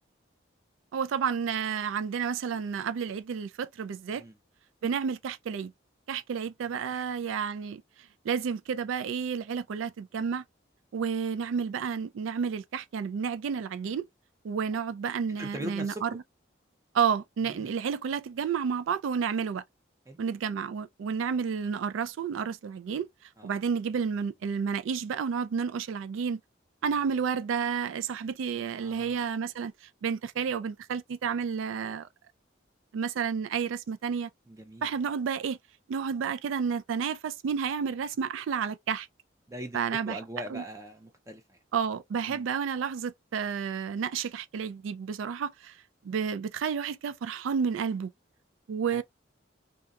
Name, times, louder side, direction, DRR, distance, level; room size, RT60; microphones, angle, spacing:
voice 1, 0.9-4.2 4.8-5.7 6.1-7.8 8.2-10.4 10.9-14.0 14.4-16.1 16.9-19.6 20.2-23.1 23.4-26.4 26.8-29.7 30.0-32.1 32.9-34.3 34.8-35.6 35.9-39.1 39.7-40.2 40.5-40.6 41.7-45.8 46.0-48.1 48.7-49.0, right 6 dB, 85° right, 0.3 m, -31 dB
voice 2, 15.4-16.0 17.5-17.7 20.1-20.2 23.4-23.5 28.8-29.2 34.5-34.9 39.5-39.8 40.0-41.6 42.3-42.4 48.9-49.0, equal, 15° right, 0.4 m, -41 dB
2.8 x 2.2 x 2.3 m
head